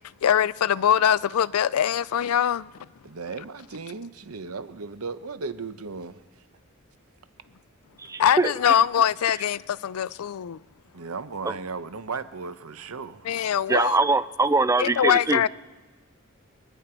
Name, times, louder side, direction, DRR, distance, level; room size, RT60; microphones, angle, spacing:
voice 1, 0.2-2.7 8.2-10.6 13.2-14.0 14.8-15.5, left 9 dB, 90° left, 0.4 m, -22 dB
voice 2, 3.0-6.2 10.9-13.3, right 4 dB, 85° right, 0.8 m, -36 dB
voice 3, 8.0-8.5 13.7-15.4, right 3 dB, 15° right, 0.4 m, -22 dB
24.0 x 10.0 x 4.5 m
head